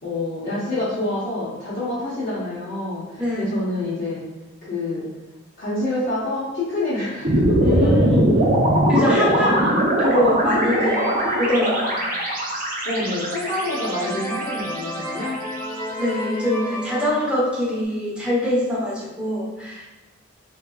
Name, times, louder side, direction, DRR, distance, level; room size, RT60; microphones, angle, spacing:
voice 1, 0.0-4.2 4.6-5.1 5.6-8.1 9.2-9.8 12.8-15.4, left 2 dB, 50° left, -11 dB, 0.9 m, -27 dB
voice 2, 3.2-3.6 7.6-8.3 8.9-12.1 16.0-19.9, left 1 dB, 5° right, -6 dB, 0.9 m, -23 dB
sound 1, 7.2-15.5, right 1 dB, 45° right, 0.7 m, -21 dB
sound 2, 10.7-12.3 12.8-12.9 13.3-17.8, equal, 10° left, 0.3 m, -33 dB
3.6 x 2.9 x 2.3 m, 1.2 s
head